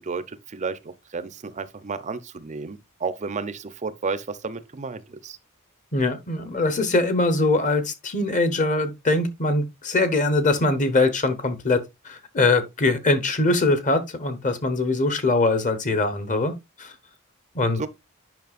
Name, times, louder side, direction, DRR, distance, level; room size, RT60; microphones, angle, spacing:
voice 1, 0.0-5.4 17.8-17.9, right 4 dB, 35° right, 0.5 m, -32 dB
voice 2, 5.9-16.5 16.8-16.9 17.5-17.9, left 2 dB, 35° left, 1.0 m, -22 dB
9.3 x 5.5 x 2.4 m
head